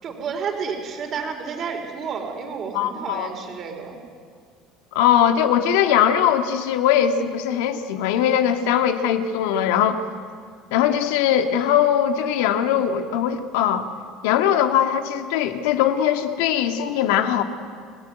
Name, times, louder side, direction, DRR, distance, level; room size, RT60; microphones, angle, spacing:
voice 1, 0.0-4.0, right 6 dB, 45° right, 3 dB, 4.6 m, -30 dB
voice 2, 2.7-3.3 5.0-10.0 10.7-13.9 14.2-17.4, left 9 dB, 85° left, 6 dB, 1.9 m, -20 dB
29.5 x 17.5 x 9.3 m, 2.1 s
supercardioid pair, 110°, 0 cm